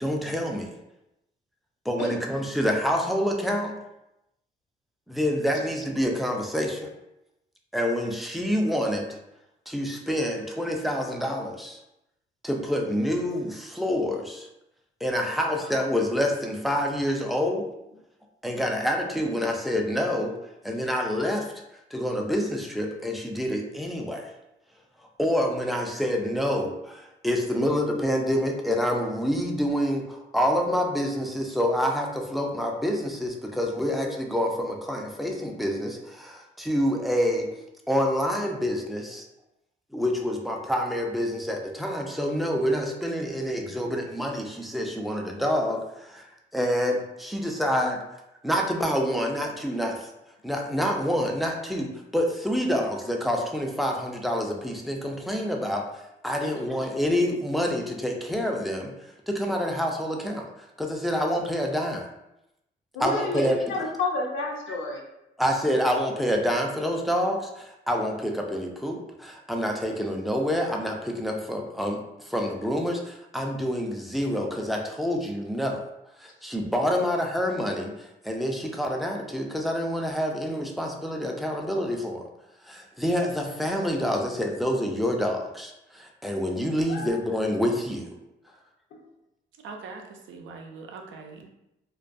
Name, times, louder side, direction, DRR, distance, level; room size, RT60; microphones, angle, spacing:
voice 1, 0.0-0.7 1.9-3.8 5.1-6.9 7.7-9.1 9.7-11.8 12.4-14.5 15.0-17.7 18.4-20.4 20.6-21.5 21.9-24.3 25.2-37.5 37.9-39.2 39.9-46.3 46.5-48.0 48.4-50.1 50.4-58.9 59.3-60.4 60.8-62.1 63.0-63.6 64.7-64.8 65.4-75.8 76.2-82.3 82.6-88.1, equal, ahead, 1 dB, 0.4 m, -27 dB
voice 2, 62.9-65.0 86.9-87.1 88.9-89.0, left 2 dB, 80° left, 0 dB, 0.6 m, -30 dB
voice 3, 89.6-91.5, right 4 dB, 75° right, 2 dB, 0.5 m, -42 dB
2.2 x 2.2 x 2.5 m, 0.88 s
cardioid pair, 90°, 20 cm